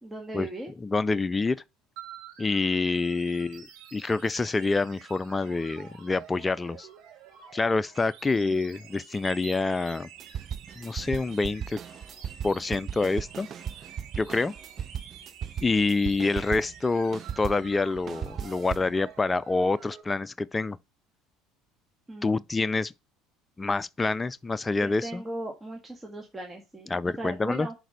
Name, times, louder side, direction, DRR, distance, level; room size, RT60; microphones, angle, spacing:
voice 1, 0.0-0.7 8.3-8.6 22.1-22.4 24.8-27.8, right 1 dB, 15° right, 1.8 m, -38 dB
voice 2, 0.8-1.6 2.4-6.9 7.5-10.1 10.8-11.8 12.4-13.5 14.2-14.5 15.6-20.8 22.2-22.9 23.6-25.2 26.9-27.7, left 3 dB, 20° left, 0.4 m, -27 dB
sound 1, 2.0-20.0, right 7 dB, 60° right, 2.4 m, -49 dB
sound 2, 10.2-16.8 17.1-19.0, right 8 dB, 45° right, 0.4 m, -37 dB
6.0 x 5.0 x 6.6 m
hypercardioid pair, 75°, 0 cm